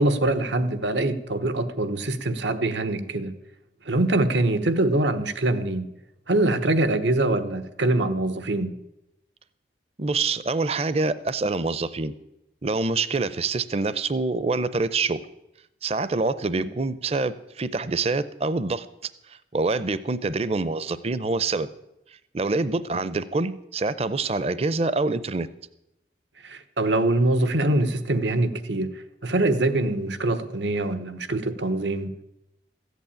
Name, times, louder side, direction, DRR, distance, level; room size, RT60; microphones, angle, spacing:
voice 1, 0.0-3.3 3.8-5.9 6.3-8.7 16.6-16.7 26.4-28.9 29.2-32.1, right 2 dB, 90° right, 1.2 m, -24 dB
voice 2, 10.0-12.1 12.6-15.2 15.8-18.9 19.5-21.7 22.3-25.5, right 3 dB, 35° right, 0.6 m, -26 dB
14.5 x 8.3 x 8.8 m
head